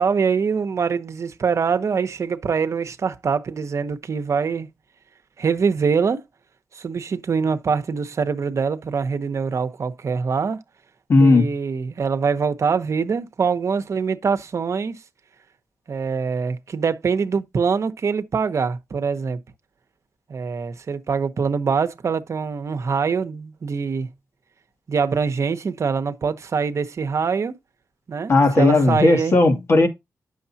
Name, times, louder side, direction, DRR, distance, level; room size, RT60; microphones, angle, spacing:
voice 1, 0.0-4.7 5.4-6.2 6.7-10.6 11.2-15.0 15.9-19.4 20.3-24.1 24.9-27.5 28.1-29.3, right 5 dB, 60° right, 0.9 m, -24 dB
voice 2, 11.1-11.5 28.3-29.9, left 2 dB, 50° left, 2.1 m, -15 dB
9.4 x 6.5 x 2.8 m
cardioid pair, 80°, 6 cm